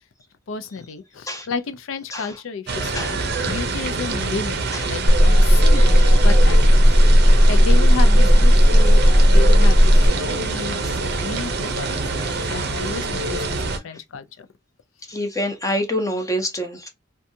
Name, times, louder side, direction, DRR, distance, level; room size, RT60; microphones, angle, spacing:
voice 1, 0.5-3.2 3.5-7.2 7.5-14.5, left 4 dB, 80° left, 0.4 m, -32 dB
sound 1, 2.7-13.8, right 3 dB, 55° right, 0.6 m, -25 dB
sound 2, 5.1-10.1, equal, 15° right, 0.8 m, -13 dB
voice 2, 15.1-16.9, equal, 15° left, 0.5 m, -26 dB
2.6 x 2.3 x 2.6 m
head